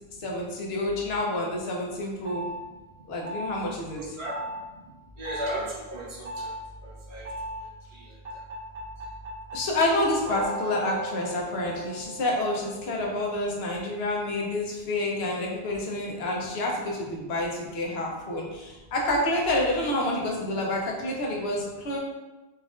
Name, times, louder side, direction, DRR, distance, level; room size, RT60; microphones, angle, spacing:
voice 1, 0.2-2.5 3.1-4.0 9.5-22.0, left 1 dB, 80° left, -2 dB, 0.9 m, -28 dB
sound 1, 2.3-2.6 3.3-3.6 4.3-4.6 5.3-5.6 6.3-6.6 7.3-7.6 8.3-13.3, right 1 dB, 70° right, 1.3 m, -37 dB
voice 2, 3.9-4.4 5.2-6.5 6.8-7.3 7.9-8.1, right 1 dB, 90° right, -5 dB, 1.2 m, -35 dB
4.1 x 2.5 x 2.4 m, 1.1 s
omnidirectional pair, 1.0 m